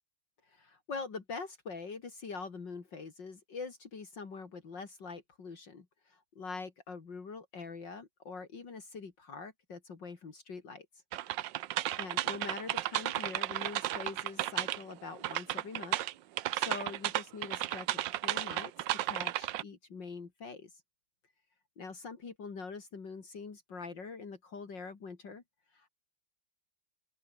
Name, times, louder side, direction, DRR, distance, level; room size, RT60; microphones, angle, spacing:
voice 1, 0.4-10.9 12.0-16.0 16.5-20.7 21.8-25.4 25.7-25.9, left 4 dB, 60° left, 3.3 m, -44 dB
sound 1, 11.1-14.9 15.2-19.6, right 14 dB, 70° right, 1.4 m, -34 dB
open air
omnidirectional pair, 2.3 m